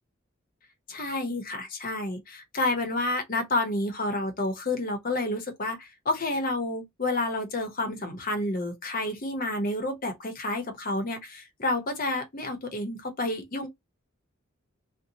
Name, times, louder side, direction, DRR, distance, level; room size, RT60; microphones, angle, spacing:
voice 1, 0.9-13.7, left 2 dB, 45° left, 0.8 m, -30 dB
2.7 x 2.1 x 2.7 m
head